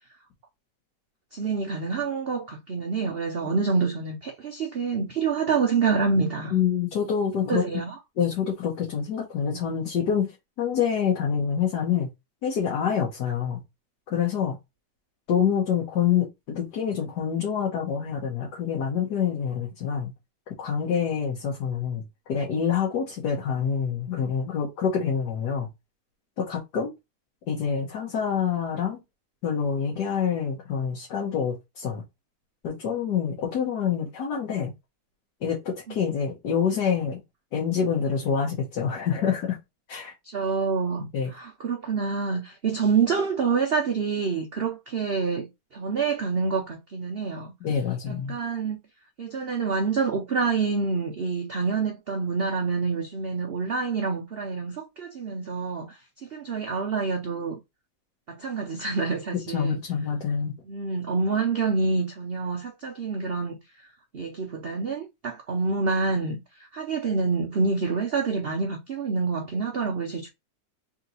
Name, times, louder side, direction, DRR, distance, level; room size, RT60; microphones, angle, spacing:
voice 1, 1.3-6.6 7.5-7.9 40.3-45.5 45.7-47.5 48.3-48.8 49.2-56.0 56.3-57.6 58.3-59.8 60.7-63.6 64.1-66.4 66.7-70.3, right 4 dB, 60° right, 0.6 m, -27 dB
voice 2, 6.5-7.6 8.2-10.3 10.6-12.1 12.4-13.6 14.1-14.6 15.3-20.1 20.6-22.0 22.3-25.7 26.4-26.9 27.5-29.0 29.4-32.0 32.6-34.7 35.4-37.2 37.5-39.6 39.9-40.1 41.0-41.3 47.6-48.4 59.5-60.5, left 7 dB, 70° left, 1.6 m, -26 dB
3.7 x 3.0 x 3.9 m
omnidirectional pair, 1.9 m